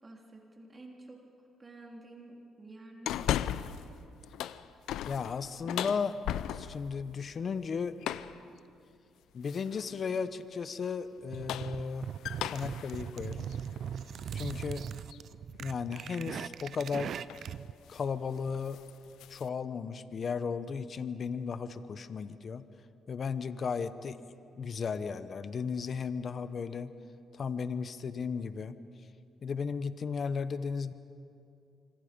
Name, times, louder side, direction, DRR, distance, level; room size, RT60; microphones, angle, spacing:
voice 1, 0.0-1.2 1.6-3.6, right 1 dB, 25° right, 0 dB, 3.4 m, -50 dB
sound 1, 3.1-3.9 4.2-6.9 8.0-8.4 9.5-9.9 11.2-14.6 15.1-15.2 16.7-17.0 17.3-17.5 17.9-18.1 18.4-19.5, left 11 dB, 85° left, 0.6 m, -37 dB
voice 2, 5.1-6.2 6.5-8.0 9.3-12.1 12.4-13.5 14.3-14.8 15.6-17.1 17.9-18.8 19.3-22.6 23.1-24.2 24.6-26.9 27.3-28.8 29.4-30.9, left 5 dB, 50° left, 13 dB, 0.9 m, -35 dB
sound 2, 11.3-17.7, right 8 dB, 65° right, 0.5 m, -40 dB
26.0 x 24.5 x 5.3 m, 2.5 s
cardioid pair, 90°, 0 cm